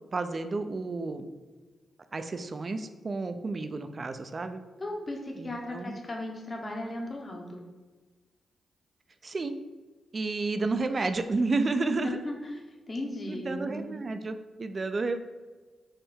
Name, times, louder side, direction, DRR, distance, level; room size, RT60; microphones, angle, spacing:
voice 1, 0.1-1.3 2.1-4.6 5.3-6.0 9.2-9.5 10.1-12.2 13.3-15.2, right 3 dB, 45° right, 9 dB, 0.3 m, -31 dB
voice 2, 4.8-7.6 11.8-12.5 12.9-13.9, left 1 dB, 40° left, 1 dB, 0.8 m, -36 dB
3.6 x 2.2 x 4.2 m, 1.3 s
hypercardioid pair, 40°, 0 cm